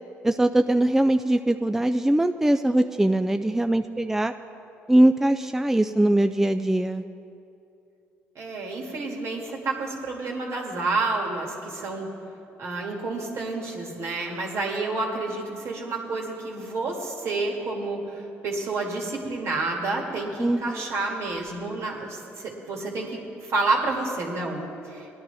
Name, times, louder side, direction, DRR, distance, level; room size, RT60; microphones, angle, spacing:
voice 1, 0.2-4.3 4.9-7.0 20.4-20.9, right 1 dB, 5° right, 8 dB, 0.3 m, -21 dB
voice 2, 8.4-12.1 12.6-25.1, right 3 dB, 65° right, -1 dB, 2.2 m, -29 dB
18.0 x 10.5 x 3.4 m, 2.7 s
cardioid pair, 85°, 5 cm